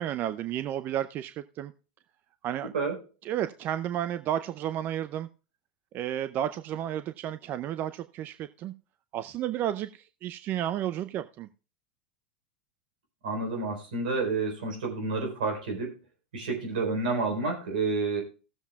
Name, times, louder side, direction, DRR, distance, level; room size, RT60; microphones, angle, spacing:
voice 1, 0.0-1.7 2.4-2.7 3.2-5.3 5.9-8.7 9.1-11.5, right 11 dB, 40° right, 12 dB, 0.5 m, -32 dB
voice 2, 13.2-15.9 16.3-18.2, right 3 dB, 75° right, 3 dB, 4.0 m, -29 dB
18.0 x 7.2 x 2.3 m, 0.35 s
hypercardioid pair, 100°, 5 cm